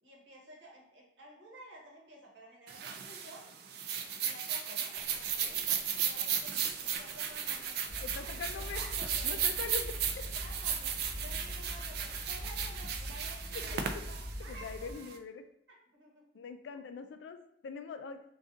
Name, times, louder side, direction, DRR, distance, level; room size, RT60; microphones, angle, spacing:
voice 1, 0.0-3.5 4.0-9.3 10.4-15.2 15.9-16.2, right 1 dB, 90° right, -2 dB, 1.0 m, -53 dB
sound 1, 2.7-15.1, right 8 dB, 60° right, 0.3 m, -35 dB
sound 2, 4.9-12.4, left 1 dB, 20° left, 0.6 m, -57 dB
sound 3, 7.9-14.9, equal, 25° right, 1.1 m, -43 dB
voice 2, 8.0-8.8 9.2-10.2 14.5-15.4 16.3-18.2, left 5 dB, 75° left, 8 dB, 0.3 m, -43 dB
2.6 x 2.3 x 3.6 m, 0.75 s
head